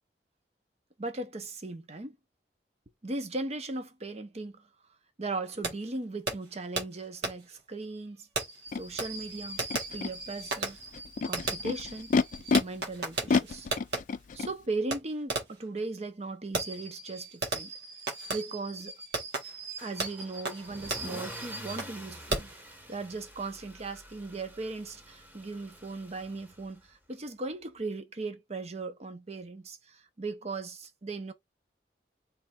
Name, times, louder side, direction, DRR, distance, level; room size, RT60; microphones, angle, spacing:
voice 1, 1.0-2.2 3.0-4.7 5.2-8.3 8.7-9.6 9.9-10.8 11.2-12.2 12.6-13.7 14.3-17.7 18.3-18.9 19.8-31.3, right 3 dB, 35° right, 0.8 m, -38 dB
Fireworks, 5.6-5.7 6.3-6.4 6.8-6.9 7.2-7.3 8.4-14.0 14.9-15.0 15.3-15.6 16.5-22.0 22.3-22.6, right 2 dB, 70° right, 1.7 m, -35 dB
Animal, 8.7-8.8 9.6-10.1 10.9-12.6 13.3-14.5, left 4 dB, 45° left, 0.4 m, -28 dB
Car / Engine starting / Accelerating revving vroom, 19.8-26.9, equal, 10° right, 1.0 m, -47 dB
3.5 x 3.2 x 4.2 m
head